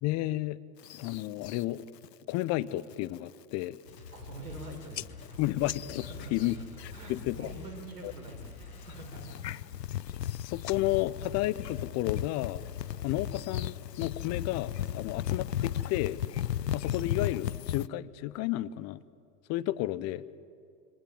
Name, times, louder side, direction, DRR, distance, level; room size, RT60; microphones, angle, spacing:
voice 1, 0.0-0.6 1.0-1.9 2.3-3.8 5.4-6.6 7.1-7.5 8.0-8.1 10.4-12.6 13.0-16.2 16.7-19.0 19.5-20.3, left 16 dB, 35° left, 16 dB, 0.8 m, -32 dB
sound 1, 0.8-1.6 2.0-2.4 2.8-3.2 3.6-3.7 3.9-4.6 4.9-7.5 7.8-8.3 8.8-17.9, left 11 dB, 80° left, 0.6 m, -36 dB
sound 2, 3.9-9.4, left 4 dB, 60° left, 7.3 m, -47 dB
voice 2, 4.1-5.4 6.0-9.6, right 2 dB, 70° right, 3 dB, 6.2 m, -46 dB
27.0 x 26.0 x 7.7 m, 2.4 s
figure-of-eight pair, 95°, 48 cm